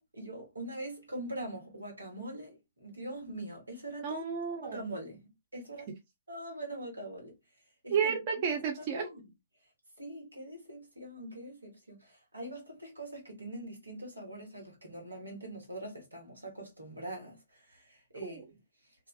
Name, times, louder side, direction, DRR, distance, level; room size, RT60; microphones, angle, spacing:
voice 1, 0.1-4.2 4.6-5.9 6.3-7.3 7.8-8.1 8.9-9.3 10.0-18.4, right 1 dB, 90° right, 1.3 m, -43 dB
voice 2, 4.0-4.8 7.9-9.1 18.2-18.4, right 7 dB, 40° right, 0.6 m, -32 dB
2.3 x 2.3 x 2.3 m
figure-of-eight pair, 125°, 0 cm